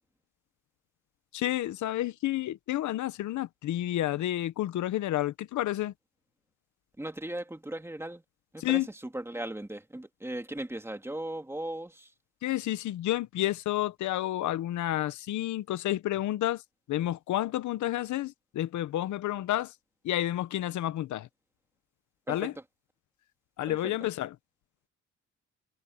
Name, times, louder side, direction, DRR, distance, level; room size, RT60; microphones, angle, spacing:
voice 1, 1.3-5.9 8.6-8.9 12.4-16.6 16.9-19.7 20.0-21.3 22.3-22.6 23.6-24.4, left 14 dB, 80° left, 1.0 m, -30 dB
voice 2, 7.0-8.2 8.5-8.8 9.1-12.1 22.3-22.5 23.7-23.8, right 1 dB, 10° right, 2.6 m, -37 dB
cardioid pair, 85°, 29 cm